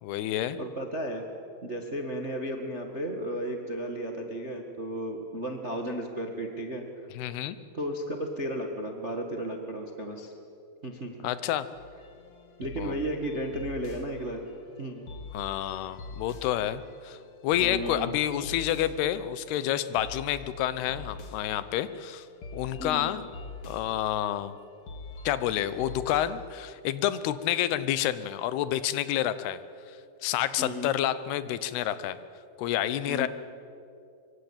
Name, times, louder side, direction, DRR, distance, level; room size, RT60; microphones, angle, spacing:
voice 1, 0.0-0.6 7.2-7.6 11.2-11.7 12.8-13.0 15.3-17.2 17.4-22.3 22.5-23.3 23.7-24.6 25.2-29.6 29.9-30.0 30.2-32.2 32.6-33.3, left 12 dB, 85° left, 14 dB, 3.0 m, -29 dB
voice 2, 0.6-1.2 1.6-6.8 7.7-10.3 10.8-11.1 12.6-14.4 14.8-15.1 17.6-18.1 22.8-23.1 30.6-30.9 33.1-33.3, right 1 dB, 40° right, 3 dB, 1.0 m, -34 dB
sound 1, 11.8-26.5, left 4 dB, 45° left, 2.5 m, -44 dB
25.0 x 24.5 x 8.8 m, 2.6 s
omnidirectional pair, 4.5 m